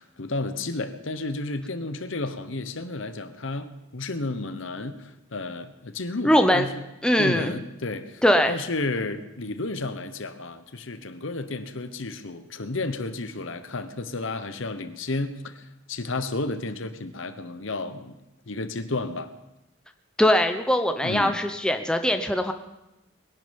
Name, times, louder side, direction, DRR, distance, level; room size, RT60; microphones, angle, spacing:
voice 1, 0.0-6.8 7.2-18.2 18.5-19.3 21.0-21.4, left 2 dB, 65° left, 10 dB, 1.1 m, -32 dB
voice 2, 6.2-6.7 7.0-7.5 8.2-8.6 20.2-22.5, equal, 5° left, 6 dB, 0.7 m, -21 dB
21.0 x 11.0 x 5.3 m, 0.96 s
head